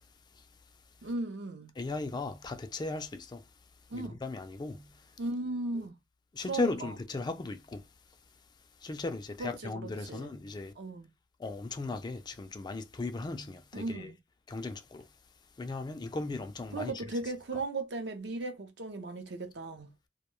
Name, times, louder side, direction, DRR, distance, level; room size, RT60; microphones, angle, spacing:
voice 1, 1.0-1.7 3.9-4.2 5.2-6.0 6.5-6.9 9.4-10.3 10.8-11.1 13.7-14.2 16.7-19.9, right 2 dB, 70° right, 0.6 m, -37 dB
voice 2, 1.8-3.4 3.9-5.0 6.3-7.8 8.8-10.7 11.4-14.1 14.5-15.0 15.6-16.9, left 3 dB, 25° left, 0.3 m, -37 dB
2.2 x 2.2 x 3.0 m
head